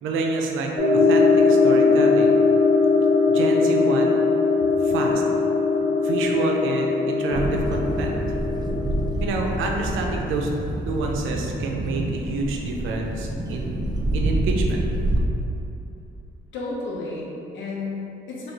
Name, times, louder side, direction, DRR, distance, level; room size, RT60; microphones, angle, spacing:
voice 1, 0.0-2.4 3.3-4.2 4.8-5.2 6.0-8.2 9.2-10.5 10.8-14.8, right 3 dB, 90° right, 0 dB, 0.6 m, -28 dB
sound 1, 0.8-10.3, left 4 dB, 45° left, 1.1 m, -20 dB
sound 2, 7.3-15.2, right 1 dB, 20° right, 0.4 m, -27 dB
voice 2, 16.5-18.5, left 3 dB, 70° left, -5 dB, 0.9 m, -32 dB
3.2 x 2.6 x 4.3 m, 2.9 s
cardioid pair, 90°, 20 cm